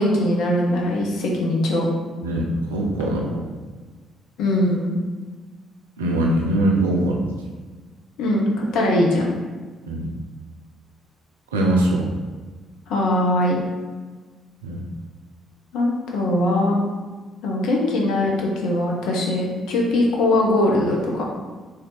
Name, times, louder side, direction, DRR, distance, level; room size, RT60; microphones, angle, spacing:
voice 1, 0.0-1.9 4.4-4.9 8.2-9.3 12.9-13.6 15.7-16.7 17.4-21.2, left 1 dB, 60° left, -1 dB, 0.7 m, -21 dB
voice 2, 2.2-3.4 6.0-7.3 9.9-10.1 11.5-12.1 14.6-14.8, right 1 dB, 80° right, -1 dB, 0.5 m, -21 dB
3.4 x 2.7 x 3.8 m, 1.4 s
figure-of-eight pair, 45°, 0 cm